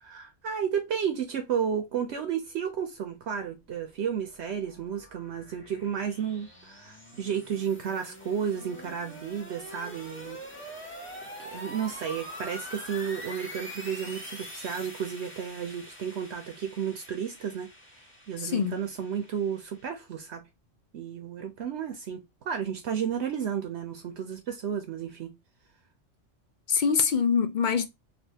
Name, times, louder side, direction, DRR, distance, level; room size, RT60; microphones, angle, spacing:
voice 1, 0.0-10.4 10.9-11.0 11.4-17.7 18.3-20.5 20.9-25.4, right 8 dB, 65° right, 0.9 m, -32 dB
sound 1, 3.8-19.9, equal, 10° left, 0.8 m, -45 dB
voice 2, 18.4-18.7 26.7-27.9, left 6 dB, 65° left, 0.5 m, -24 dB
3.3 x 2.5 x 2.7 m
omnidirectional pair, 1.3 m